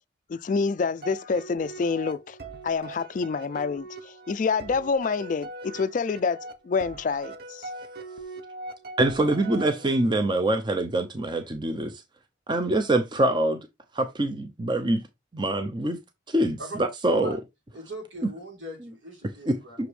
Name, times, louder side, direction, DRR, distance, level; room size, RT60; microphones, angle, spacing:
voice 1, 0.3-2.4 2.6-6.4 6.6-7.6, left 5 dB, 40° left, 0.3 m, -27 dB
sound 1, 1.0-10.3, right 2 dB, 55° right, 0.8 m, -42 dB
voice 2, 9.0-12.0 12.5-13.7 13.9-15.0 15.3-16.0 16.3-17.4 19.8-19.9, right 1 dB, 25° right, 0.6 m, -24 dB
voice 3, 17.7-19.9, equal, 80° right, 3.5 m, -40 dB
6.1 x 5.0 x 3.2 m
head